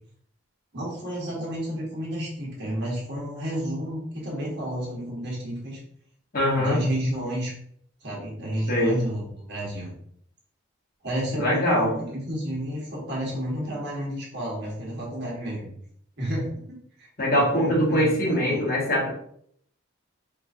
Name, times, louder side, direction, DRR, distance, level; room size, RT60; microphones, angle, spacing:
voice 1, 0.7-5.8 6.5-7.5 8.0-9.9 11.0-15.7 16.2-18.6, equal, 55° right, -4 dB, 1.4 m, -31 dB
voice 2, 6.3-6.8 8.7-9.0 11.4-11.9 17.2-19.1, equal, 45° left, -3 dB, 1.2 m, -22 dB
4.6 x 2.5 x 2.7 m, 0.67 s
head